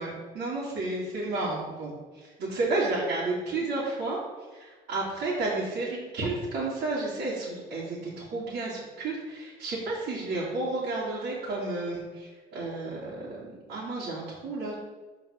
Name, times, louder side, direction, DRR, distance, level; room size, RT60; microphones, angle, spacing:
voice 1, 0.0-4.2 4.5-14.8, right 2 dB, 75° right, -8 dB, 2.6 m, -32 dB
6.8 x 4.6 x 6.4 m, 1.4 s
cardioid pair, 110°, 17 cm